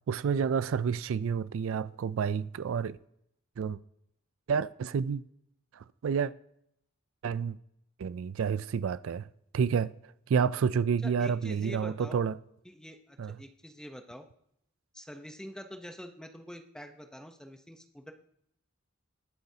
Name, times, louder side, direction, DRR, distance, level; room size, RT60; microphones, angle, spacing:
voice 1, 0.1-3.0 3.6-3.8 4.5-5.2 6.0-6.3 7.2-7.6 8.0-9.3 9.5-9.9 10.3-12.3 13.2-13.3, right 6 dB, 75° right, 0.4 m, -29 dB
voice 2, 11.0-12.2 12.6-14.3 14.9-18.1, equal, 5° left, 0.8 m, -46 dB
20.5 x 8.0 x 2.8 m
head